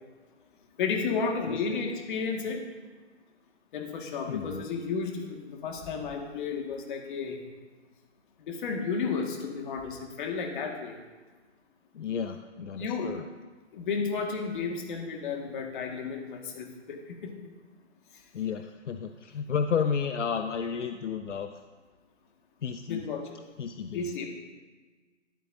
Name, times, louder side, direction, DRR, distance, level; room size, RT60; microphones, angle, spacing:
voice 1, 0.8-2.6 3.7-7.4 8.4-11.0 12.7-13.1 13.7-17.3 22.9-23.4 23.9-24.3, left 5 dB, 40° left, 2 dB, 1.8 m, -32 dB
voice 2, 1.5-1.8 4.3-4.7 11.9-13.3 18.3-21.6 22.6-23.0 23.6-24.1, left 6 dB, 75° left, 7 dB, 0.7 m, -32 dB
12.5 x 11.0 x 2.7 m, 1.4 s
hypercardioid pair, 140°, 37 cm